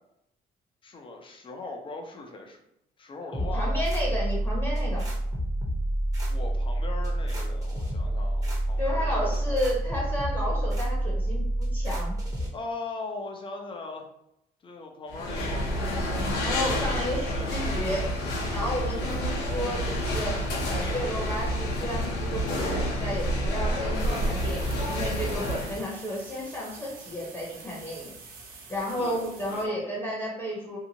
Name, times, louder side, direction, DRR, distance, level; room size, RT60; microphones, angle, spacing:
voice 1, 0.8-2.6 3.0-3.9 6.3-9.4 12.5-14.1 14.6-15.9 16.8-17.8 18.9-19.0 29.0-29.8, left 3 dB, 30° left, 2 dB, 0.6 m, -40 dB
sound 1, 3.3-12.5, right 1 dB, 20° right, 0.9 m, -28 dB
voice 2, 3.4-5.0 8.8-12.2 16.4-18.0 18.5-20.4 20.7-28.1 28.7-30.8, equal, 10° left, -5 dB, 0.9 m, -32 dB
sound 2, 15.1-25.8, equal, 85° left, 0.8 m, -29 dB
sound 3, 24.0-29.7, right 4 dB, 60° right, 0.7 m, -46 dB
2.8 x 2.4 x 2.7 m, 0.79 s
cardioid pair, 110°, 17 cm